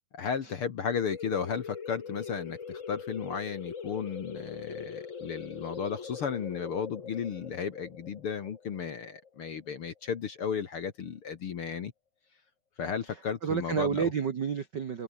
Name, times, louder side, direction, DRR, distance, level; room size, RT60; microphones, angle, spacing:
voice 1, 0.1-11.9 12.8-14.1, left 6 dB, 50° left, 1.8 m, -34 dB
sound 1, 1.0-10.3, left 6 dB, 80° left, 0.7 m, -42 dB
voice 2, 13.0-15.0, right 7 dB, 55° right, 1.2 m, -31 dB
omnidirectional pair, 4.0 m